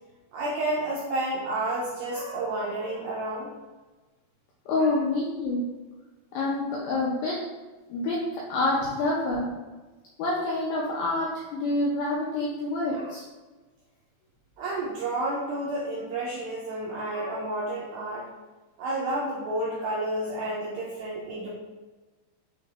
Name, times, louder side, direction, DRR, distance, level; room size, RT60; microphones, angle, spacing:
voice 1, 0.3-3.5 4.8-5.0 12.9-13.1 14.6-18.2 18.8-21.5, right 1 dB, 85° right, -5 dB, 2.1 m, -30 dB
voice 2, 4.7-5.7 6.3-7.4 7.9-9.6 10.2-13.2, left 2 dB, 85° left, -5 dB, 2.1 m, -27 dB
6.1 x 3.3 x 2.4 m, 1.2 s
omnidirectional pair, 4.9 m